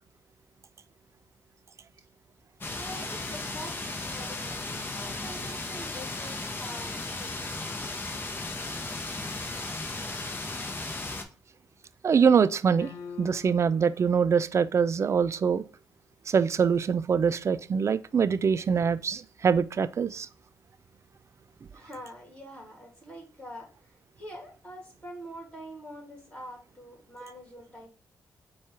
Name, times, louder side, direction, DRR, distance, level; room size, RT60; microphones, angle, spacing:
sound 1, 2.6-11.2, left 2 dB, 30° left, 0.8 m, -35 dB
voice 1, 2.7-7.8 21.7-27.9, equal, 15° left, 2.4 m, -46 dB
voice 2, 12.0-12.9 13.2-15.6 16.3-20.3, right 6 dB, 45° right, 0.3 m, -24 dB
sound 2, 12.8-13.9, left 5 dB, 80° left, 0.6 m, -43 dB
4.3 x 2.3 x 4.6 m
cardioid pair, 60°, 7 cm